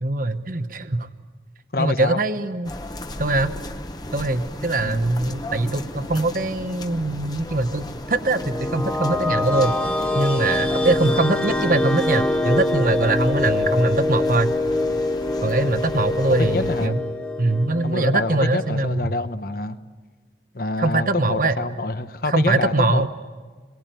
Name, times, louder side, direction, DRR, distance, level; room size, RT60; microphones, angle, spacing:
voice 1, 0.0-1.1 1.8-2.7 3.2-3.5 4.1-9.7 10.1-14.5 15.4-17.0 17.4-19.1 20.8-21.5 22.3-23.1, right 2 dB, 50° right, 9 dB, 1.0 m, -22 dB
voice 2, 1.7-2.2 4.8-5.0 11.0-11.2 16.3-17.0 17.8-19.8 20.5-23.1, left 2 dB, 55° left, 10 dB, 1.0 m, -27 dB
sound 1, 2.6-16.9, left 1 dB, 25° left, 1.1 m, -35 dB
sound 2, 8.1-18.9, left 2 dB, 5° left, 1.1 m, -25 dB
27.0 x 22.5 x 9.2 m, 1.4 s
head